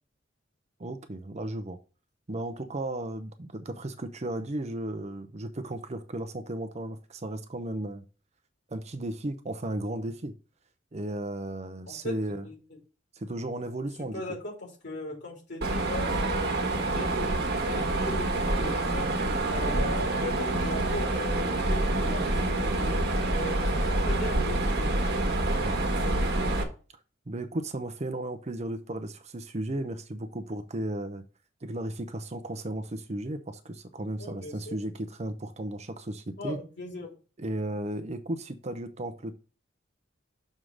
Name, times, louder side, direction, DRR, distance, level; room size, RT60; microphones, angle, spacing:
voice 1, 0.8-1.8 2.3-8.0 8.7-10.3 10.9-12.5 13.2-14.2 25.6-25.8 27.3-31.2 31.6-36.6 37.4-39.4, right 1 dB, 35° right, 0.7 m, -35 dB
voice 2, 11.9-12.6 14.0-17.3 17.6-19.0 19.5-23.0 23.3-24.9 34.2-34.8 36.4-37.1, left 1 dB, 60° left, 3.4 m, -38 dB
Mechanisms, 15.6-26.6, right 2 dB, 55° right, 1.3 m, -27 dB
6.4 x 3.7 x 6.2 m
head